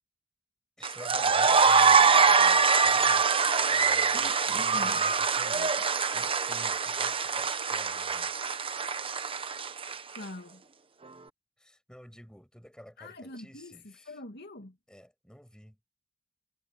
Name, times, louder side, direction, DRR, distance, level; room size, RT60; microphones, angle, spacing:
voice 1, 0.8-3.4 3.7-8.3 11.6-14.2 14.9-15.9, equal, 5° left, 5.9 m, -51 dB
sound 1, 0.8-10.2, right 5 dB, 25° right, 1.0 m, -24 dB
voice 2, 4.1-5.0 10.2-10.6 13.0-13.7 14.1-14.8, left 1 dB, 55° left, 2.4 m, -43 dB
head